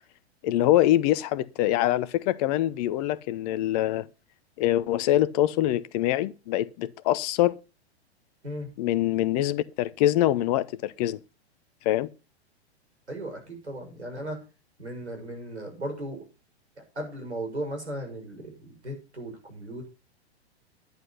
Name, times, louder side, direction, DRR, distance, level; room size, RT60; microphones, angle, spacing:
voice 1, 0.4-4.1 4.6-7.5 8.8-11.2 11.8-12.1, left 14 dB, 35° left, 0.8 m, -24 dB
voice 2, 13.1-14.4 14.8-16.2 16.9-19.9, right 1 dB, 80° right, 6.7 m, -36 dB
11.0 x 10.0 x 5.5 m
figure-of-eight pair, 105°, 33 cm